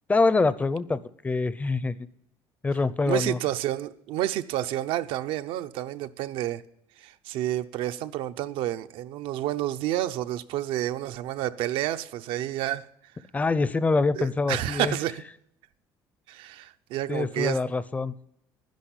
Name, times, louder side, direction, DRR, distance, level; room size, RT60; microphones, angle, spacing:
voice 1, 0.1-2.1 2.6-3.4 13.3-15.0 17.1-18.1, left 3 dB, 15° left, 0.6 m, -25 dB
voice 2, 3.1-6.6 7.0-12.9 14.1-15.2 16.3-17.6, right 13 dB, 75° right, 0.7 m, -29 dB
11.5 x 10.5 x 10.0 m
cardioid pair, 135°, 9 cm